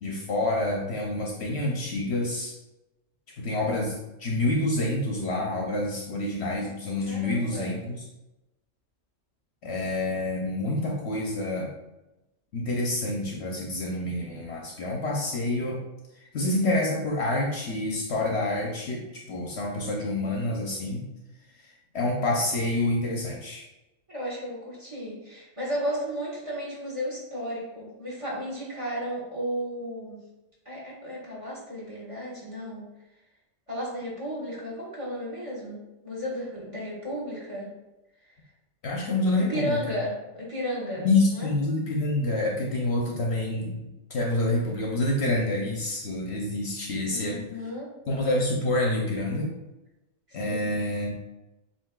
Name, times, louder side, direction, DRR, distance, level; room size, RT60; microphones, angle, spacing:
voice 1, 0.0-2.5 3.4-8.0 9.6-11.7 12.5-15.8 16.3-21.0 21.9-23.6 38.8-39.8 41.0-47.4 48.1-49.5 50.3-51.1, left 2 dB, 60° left, -1 dB, 0.9 m, -27 dB
voice 2, 7.0-7.8 24.1-30.2 30.6-32.8 33.7-35.8 36.0-37.7 38.3-38.4 39.4-41.5 47.1-47.9 50.3-50.8, equal, 25° right, -5 dB, 1.4 m, -34 dB
7.4 x 2.9 x 2.3 m, 0.98 s
omnidirectional pair, 1.4 m